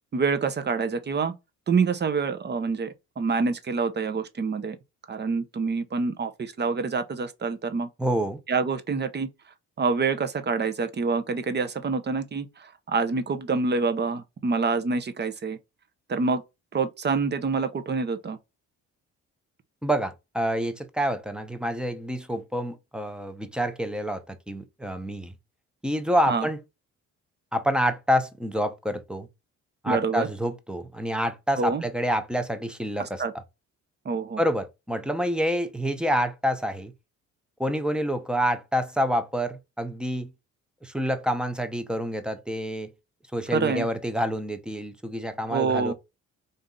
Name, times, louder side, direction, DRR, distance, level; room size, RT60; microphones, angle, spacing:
voice 1, 0.1-1.3 1.7-4.8 5.1-7.9 8.5-9.3 9.8-15.6 16.1-16.4 16.7-18.4 26.3-26.5 29.9-30.3 31.6-31.8 33.0-33.3 34.0-34.4 43.5-43.9 45.5-45.9, right 4 dB, 35° right, 0.8 m, -26 dB
voice 2, 8.0-8.4 19.8-25.3 25.8-26.6 27.5-29.3 29.8-33.2 34.4-36.9 37.6-40.3 40.8-42.9 43.3-45.9, equal, 5° right, 0.7 m, -27 dB
4.0 x 2.7 x 3.7 m
cardioid pair, 90°, 30 cm